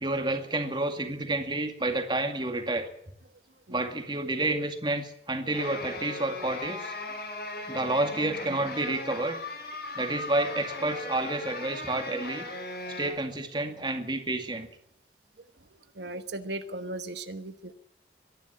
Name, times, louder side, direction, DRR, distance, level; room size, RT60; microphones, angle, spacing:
voice 1, 0.0-2.9 3.7-6.9 7.7-9.4 10.0-12.4 13.0-14.7, right 2 dB, 25° right, 6 dB, 2.2 m, -29 dB
sound 1, 5.5-13.1, left 2 dB, 60° left, 8.0 m, -38 dB
voice 2, 16.0-17.7, right 2 dB, 75° right, 9 dB, 1.2 m, -37 dB
23.5 x 11.5 x 9.7 m, 0.74 s
head